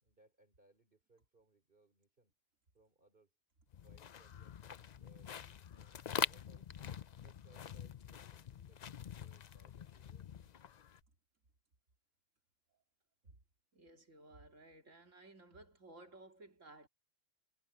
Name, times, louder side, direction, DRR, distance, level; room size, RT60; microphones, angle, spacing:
voice 1, 0.0-2.3 2.7-3.4 3.8-6.8 7.2-10.3, right 2 dB, 45° right, 3.5 m, -69 dB
sound 1, 3.7-11.0, left 8 dB, 50° left, 0.5 m, -44 dB
voice 2, 13.7-16.9, right 2 dB, 75° right, 2.8 m, -57 dB
omnidirectional pair, 1.3 m